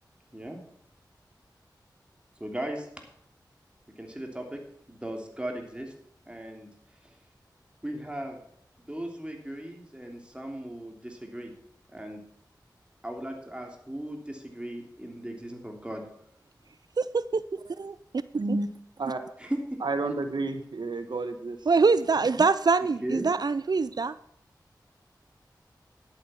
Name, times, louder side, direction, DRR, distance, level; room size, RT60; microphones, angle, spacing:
voice 1, 2.4-2.9 4.0-4.6 4.9-5.9 6.3-6.7 7.8-8.4 8.9-11.5 11.9-12.2 13.0-16.0 19.4-19.8 23.0-23.3, right 1 dB, 15° right, 2 dB, 3.2 m, -37 dB
voice 2, 17.0-18.0 18.5-18.6 21.7-24.2, right 4 dB, 60° right, 15 dB, 0.5 m, -24 dB
voice 3, 18.4-18.7 19.0-19.2 19.8-21.6, right 3 dB, 80° right, 7 dB, 1.2 m, -30 dB
11.0 x 8.6 x 5.7 m, 0.72 s
cardioid pair, 45°, 8 cm